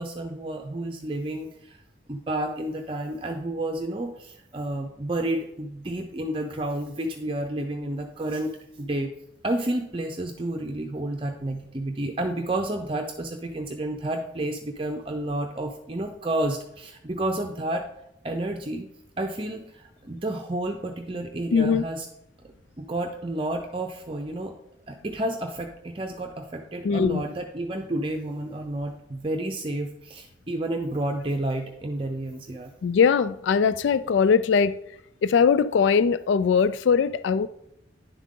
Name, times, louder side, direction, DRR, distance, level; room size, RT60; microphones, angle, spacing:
voice 1, 0.0-1.8 2.1-8.5 8.8-9.1 9.4-17.8 18.2-18.9 19.2-22.1 22.8-24.5 24.9-32.7, right 1 dB, 30° right, 0.6 m, -30 dB
voice 2, 21.5-21.8 26.8-27.2 32.8-34.8 35.2-37.5, left 6 dB, 75° left, 0.3 m, -21 dB
10.5 x 7.5 x 3.7 m
head